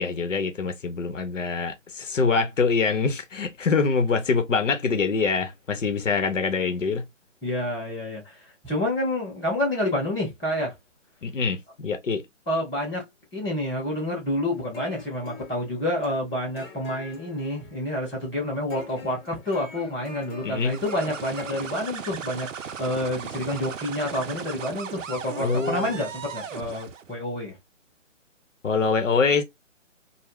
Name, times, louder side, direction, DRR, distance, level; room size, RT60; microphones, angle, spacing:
voice 1, 0.0-7.1 11.2-12.2 20.4-20.8 25.4-25.9 28.6-29.4, left 4 dB, 85° left, 0.8 m, -24 dB
voice 2, 7.4-10.7 12.5-13.1 13.3-27.6, left 1 dB, ahead, 0.5 m, -28 dB
sound 1, 14.5-23.8, left 4 dB, 20° left, 0.9 m, -45 dB
sound 2, 20.6-27.1, right 7 dB, 90° right, 0.5 m, -37 dB
2.4 x 2.0 x 3.3 m
figure-of-eight pair, 150°, 37 cm